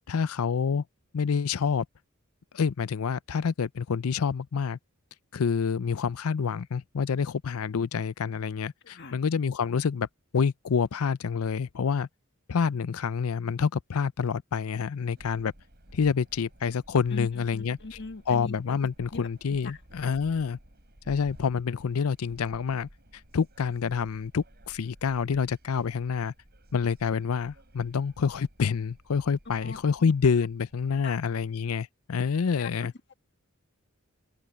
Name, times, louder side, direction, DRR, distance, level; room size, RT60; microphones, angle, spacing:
voice 1, 0.1-0.8 1.1-1.9 2.5-4.8 5.3-10.1 10.3-12.1 12.5-15.5 15.9-17.8 18.3-20.6 21.1-22.9 23.3-26.3 26.7-32.9, left 6 dB, 80° left, 0.5 m, -27 dB
sound 1, 15.2-31.2, equal, 50° right, 6.8 m, -54 dB
voice 2, 17.1-18.5 19.1-20.1 29.6-30.1 31.0-31.2 32.6-33.1, left 3 dB, 55° left, 1.7 m, -42 dB
open air
head